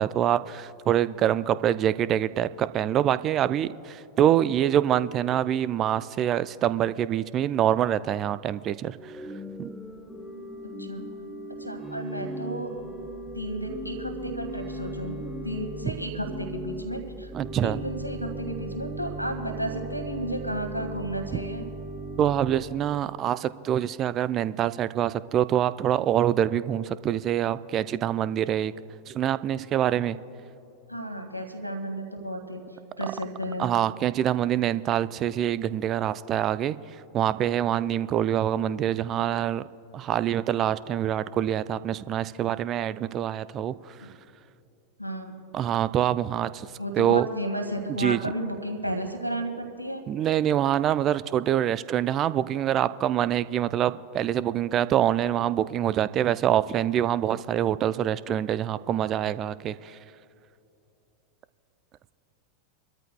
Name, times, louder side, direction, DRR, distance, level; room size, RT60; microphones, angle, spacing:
voice 1, 0.0-9.1 9.6-9.7 15.8-15.9 17.3-17.8 21.3-21.4 22.2-28.7 29.1-30.2 33.6-36.8 37.1-39.6 39.9-43.7 45.5-46.7 47.0-47.3 48.0-48.2 50.1-60.0, right 11 dB, 30° right, 16 dB, 0.4 m, -25 dB
Organ / Church bell, 9.0-23.1, right 1 dB, 5° right, 1.0 m, -37 dB
voice 2, 11.5-12.7 13.4-17.3 17.6-21.7 30.9-32.6 33.0-33.7 44.0-44.1 45.0-45.3 46.8-50.0, right 1 dB, 90° right, 3 dB, 1.7 m, -33 dB
27.0 x 13.5 x 2.2 m, 2.8 s
figure-of-eight pair, 90°, 0 cm